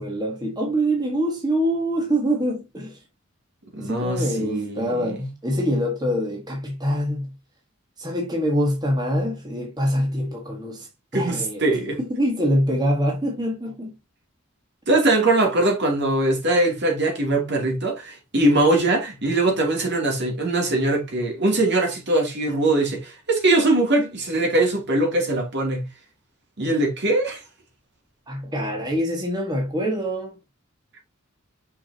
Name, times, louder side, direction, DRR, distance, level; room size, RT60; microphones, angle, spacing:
voice 1, 0.0-3.0 3.8-7.3 8.0-11.6 12.0-14.0 28.3-30.4, equal, 20° right, 1.6 m, -25 dB
voice 2, 3.7-5.3 11.1-12.0 14.9-25.9 26.6-27.4, right 2 dB, 55° right, 2.8 m, -21 dB
6.2 x 6.0 x 2.8 m
head